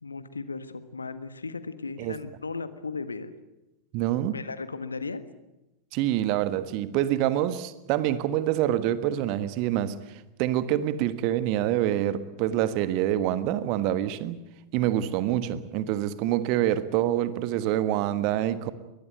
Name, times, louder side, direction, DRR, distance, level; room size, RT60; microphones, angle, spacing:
voice 1, 0.0-3.3 4.3-5.2, left 4 dB, 75° left, 12 dB, 1.5 m, -36 dB
voice 2, 3.9-4.4 5.9-14.4 14.7-18.7, right 12 dB, 45° right, 13 dB, 1.5 m, -26 dB
23.0 x 19.0 x 9.2 m, 0.96 s
figure-of-eight pair, 90°, 0 cm